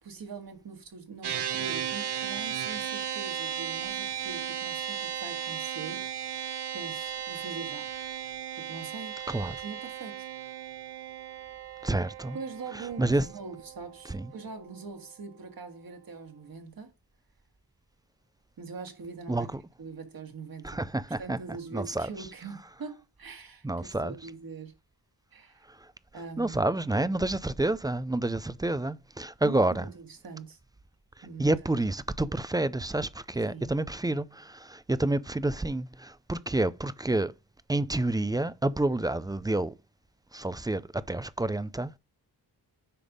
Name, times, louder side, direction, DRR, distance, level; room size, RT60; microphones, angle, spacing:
voice 1, 0.0-6.4 6.7-7.9 8.6-9.2 9.6-10.3 12.3-16.9 18.6-19.5 19.8-20.8 21.2-24.7 25.3-25.6 26.1-26.6 29.4-30.6 31.2-31.5 33.5-33.8, right 4 dB, 60° right, 1.9 m, -42 dB
sound 1, 1.2-14.8, right 9 dB, 80° right, 1.2 m, -36 dB
voice 2, 11.8-12.4 12.7-13.2 14.1-14.3 19.3-19.6 20.6-21.4 21.7-22.1 23.6-24.1 26.4-29.9 31.4-37.3 37.7-39.7 40.3-41.9, right 2 dB, 10° right, 0.3 m, -29 dB
10.0 x 3.5 x 5.1 m
wide cardioid pair, 105°, 40 cm